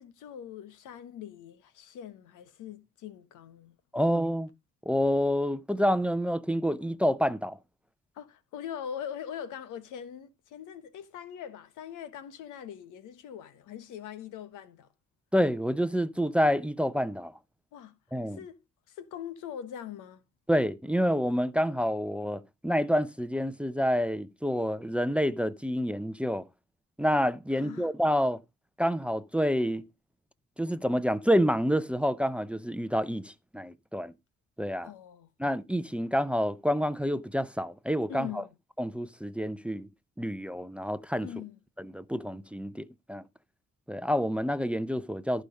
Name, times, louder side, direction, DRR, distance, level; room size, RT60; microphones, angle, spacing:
voice 1, 0.0-4.1 8.1-14.9 17.7-18.0 18.2-18.6 18.9-20.2 27.5-27.9 34.8-35.3 38.1-38.5 41.2-41.6, left 9 dB, 90° left, 1.4 m, -42 dB
voice 2, 3.9-4.5 4.9-7.6 15.3-17.3 18.1-18.4 20.5-26.4 27.0-28.4 28.8-29.8 30.6-34.1 34.6-34.9 35.4-38.4 38.8-39.9 40.2-41.3 41.8-43.2 43.9-45.4, equal, 5° right, 0.6 m, -28 dB
14.0 x 5.0 x 5.3 m
cardioid pair, 90°, 30 cm